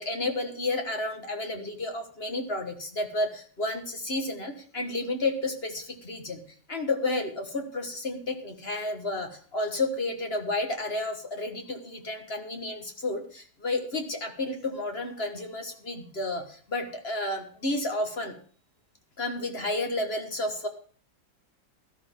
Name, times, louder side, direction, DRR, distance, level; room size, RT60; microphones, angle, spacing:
voice 1, 0.0-6.4 6.7-18.3 19.2-20.7, left 2 dB, 35° left, 5 dB, 1.4 m, -31 dB
13.0 x 12.5 x 3.6 m, 0.43 s
omnidirectional pair, 2.2 m